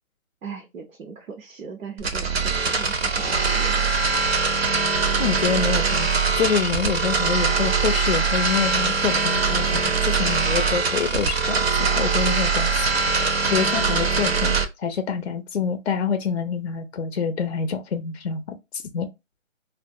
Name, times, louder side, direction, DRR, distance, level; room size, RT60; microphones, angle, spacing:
voice 1, 0.4-4.0, right 5 dB, 90° right, 0.9 m, -39 dB
sound 1, 2.0-14.6, right 4 dB, 50° right, 0.6 m, -22 dB
voice 2, 5.2-6.1 6.4-12.9 13.5-18.4 18.7-19.1, left 6 dB, 55° left, 0.5 m, -26 dB
2.4 x 2.3 x 2.5 m
hypercardioid pair, 170°, 39 cm